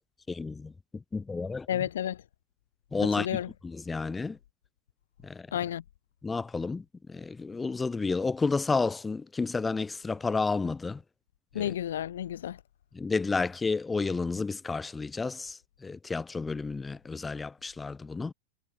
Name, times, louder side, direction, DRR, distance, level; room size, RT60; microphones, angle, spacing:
voice 1, 0.3-0.7 1.1-1.7 2.9-3.3 3.6-4.4 5.2-5.5 6.2-11.0 11.6-11.7 12.9-18.3, left 4 dB, 15° left, 4.2 m, -31 dB
voice 2, 1.7-2.2 3.0-3.5 5.5-5.8 11.5-12.6, left 10 dB, 70° left, 7.6 m, -31 dB
figure-of-eight pair, 90°, 0 cm